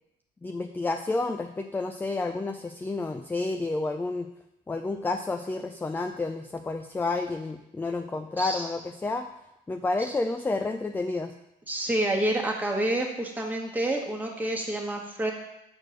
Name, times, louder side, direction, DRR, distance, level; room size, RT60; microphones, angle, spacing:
voice 1, 0.4-4.3 4.7-9.3 9.7-11.3, left 3 dB, 10° left, 7 dB, 0.4 m, -30 dB
voice 2, 8.4-8.7 10.0-10.1 11.7-15.3, right 1 dB, 10° right, -1 dB, 1.4 m, -28 dB
6.4 x 4.4 x 6.4 m, 0.87 s
cardioid pair, 110°, 17 cm